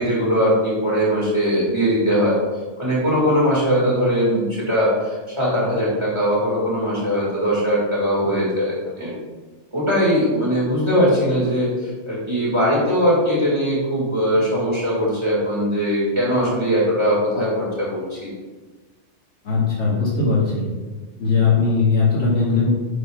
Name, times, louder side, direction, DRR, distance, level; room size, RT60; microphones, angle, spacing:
voice 1, 0.0-2.3 2.8-9.1 9.7-11.7 12.1-18.3, equal, 25° right, -7 dB, 1.9 m, -20 dB
voice 2, 19.4-20.6 21.2-22.8, left 4 dB, 75° left, -7 dB, 1.9 m, -19 dB
9.3 x 5.4 x 2.3 m, 1.3 s
omnidirectional pair, 1.2 m